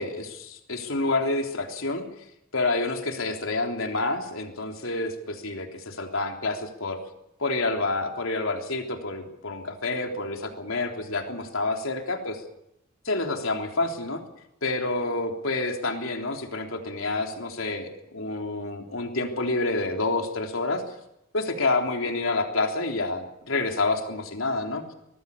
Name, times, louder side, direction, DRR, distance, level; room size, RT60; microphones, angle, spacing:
voice 1, 0.0-2.0 2.5-7.0 7.4-12.4 13.0-14.2 14.6-20.8 21.3-24.8, left 2 dB, 80° left, 3 dB, 3.5 m, -28 dB
24.5 x 19.0 x 7.1 m, 0.83 s
head